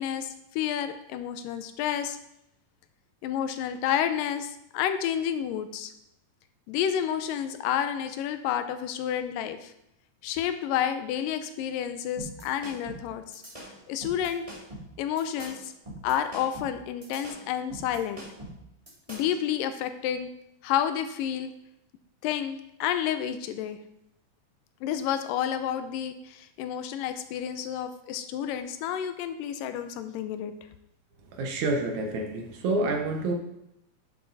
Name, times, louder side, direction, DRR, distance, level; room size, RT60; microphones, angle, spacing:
voice 1, 0.0-2.2 3.2-5.9 6.7-9.7 10.2-13.4 13.9-14.5 15.0-15.7 16.0-18.2 19.1-20.3 20.6-21.5 22.2-23.8 24.8-30.5, left 9 dB, 90° left, 10 dB, 2.3 m, -30 dB
sound 1, 12.2-19.4, right 1 dB, 10° right, 2.2 m, -43 dB
voice 2, 31.4-33.3, right 2 dB, 70° right, 3 dB, 2.2 m, -28 dB
9.1 x 7.4 x 4.0 m, 0.81 s
omnidirectional pair, 3.8 m